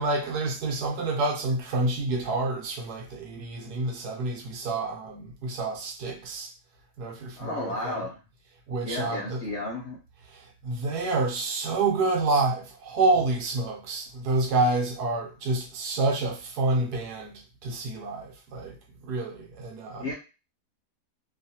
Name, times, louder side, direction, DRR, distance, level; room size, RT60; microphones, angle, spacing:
voice 1, 0.0-6.5 7.0-8.0 8.7-9.4 10.3-18.8 19.0-20.1, right 3 dB, 70° right, 1.2 m, -28 dB
voice 2, 7.4-8.2 8.8-10.0 20.0-20.1, left 2 dB, 55° left, 0.8 m, -33 dB
2.9 x 2.4 x 2.7 m
omnidirectional pair, 1.8 m